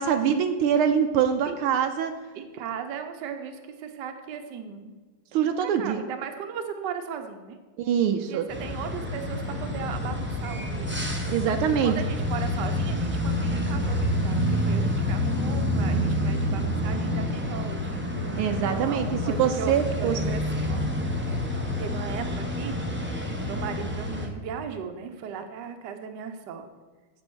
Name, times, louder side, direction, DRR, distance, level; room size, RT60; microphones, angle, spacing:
voice 1, 0.0-2.1 5.3-6.0 7.8-8.5 11.3-11.9 18.4-19.1 19.4-20.2, right 8 dB, 80° right, 7 dB, 1.5 m, -24 dB
voice 2, 2.3-4.9 5.3-7.6 8.3-11.2 11.7-18.0 18.7-20.8 21.8-22.8 23.4-26.7, right 7 dB, 60° right, 6 dB, 1.3 m, -37 dB
sound 1, 8.5-24.3, left 1 dB, 20° right, 0.3 m, -28 dB
7.9 x 7.8 x 6.1 m, 1.4 s
omnidirectional pair, 2.4 m